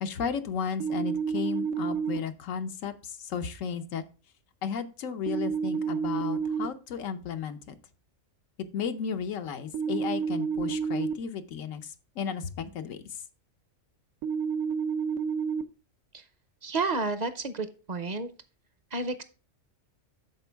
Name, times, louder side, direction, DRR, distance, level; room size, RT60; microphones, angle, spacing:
voice 1, 0.0-4.0 4.6-7.8 8.7-13.0, left 7 dB, 90° left, 8 dB, 1.2 m, -34 dB
sound 1, 0.8-2.2 5.3-6.7 9.7-11.1 14.2-15.6, right 6 dB, 80° right, 1.1 m, -29 dB
voice 2, 16.6-18.3 18.9-19.2, right 3 dB, 45° right, 11 dB, 0.6 m, -31 dB
12.5 x 4.5 x 3.4 m, 0.34 s
omnidirectional pair, 1.3 m